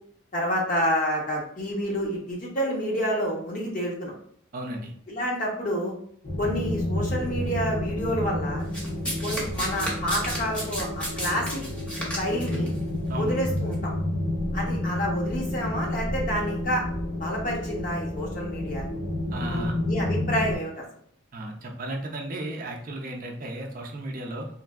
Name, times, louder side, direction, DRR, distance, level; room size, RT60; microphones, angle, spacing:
voice 1, 0.3-4.1 5.1-5.9 6.4-8.6 9.2-11.6 12.2-12.7 13.2-13.9 14.5-16.8 17.2-18.9 19.5-20.8, equal, 40° left, -2 dB, 0.8 m, -29 dB
voice 2, 4.5-4.9 13.1-13.3 19.3-19.7 21.3-24.5, right 1 dB, 40° right, 2 dB, 0.5 m, -34 dB
sound 1, 6.2-20.6, left 1 dB, 75° left, 1.3 m, -30 dB
Domestic sounds home sounds, 8.7-12.7 13.6-13.7, equal, 5° left, 0.7 m, -32 dB
3.2 x 2.6 x 2.4 m, 0.65 s
head